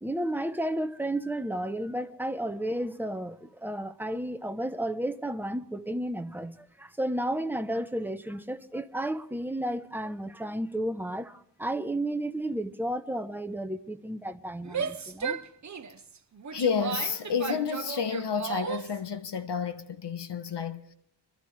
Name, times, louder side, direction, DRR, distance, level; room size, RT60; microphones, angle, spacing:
voice 1, 0.0-15.4, right 1 dB, 5° right, 0.8 m, -32 dB
Female speech woman speaking / Yell, 14.6-19.0, right 6 dB, 45° right, 0.9 m, -35 dB
voice 2, 16.5-20.8, left 6 dB, 70° left, 1.2 m, -30 dB
25.0 x 12.5 x 3.2 m
wide cardioid pair, 130°, 42 cm